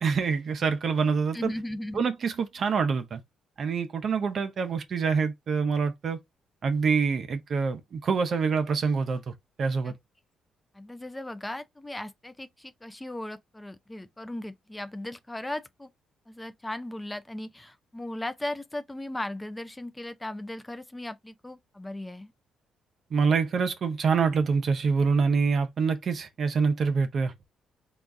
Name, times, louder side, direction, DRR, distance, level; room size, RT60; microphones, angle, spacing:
voice 1, 0.0-1.5 1.9-3.2 3.6-6.2 6.6-9.3 9.6-9.9 23.1-27.3, right 5 dB, 55° right, 0.7 m, -26 dB
voice 2, 1.3-2.0 9.8-9.9 10.7-15.9 16.3-22.3, left 1 dB, 10° left, 0.4 m, -37 dB
3.9 x 2.4 x 3.5 m
cardioid pair, 90°, 0 cm